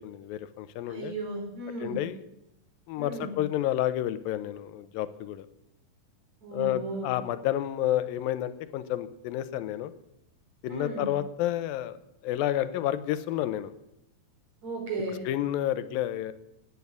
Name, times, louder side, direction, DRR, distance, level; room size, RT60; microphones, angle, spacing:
voice 1, 0.0-1.1 1.8-2.2 2.9-5.5 6.5-9.9 10.6-12.0 12.2-13.7 15.3-16.3, left 12 dB, 90° left, 14 dB, 2.5 m, -30 dB
voice 2, 0.8-2.0 3.0-3.3 6.4-7.1 10.7-11.1 14.6-15.2, right 2 dB, 50° right, 2 dB, 5.0 m, -35 dB
15.5 x 9.6 x 8.5 m, 0.87 s
omnidirectional pair, 4.1 m